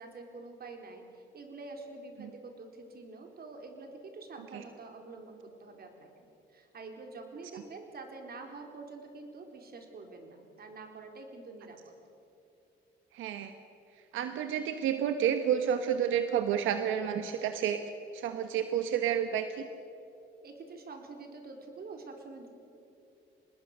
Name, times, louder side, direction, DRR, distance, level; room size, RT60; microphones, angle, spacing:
voice 1, 0.0-11.9 20.4-22.5, right 3 dB, 50° right, 3 dB, 4.3 m, -47 dB
voice 2, 13.1-13.5 14.1-17.8 18.1-19.7, right 9 dB, 90° right, 8 dB, 1.1 m, -30 dB
25.5 x 20.0 x 6.7 m, 2.8 s
cardioid pair, 90°, 20 cm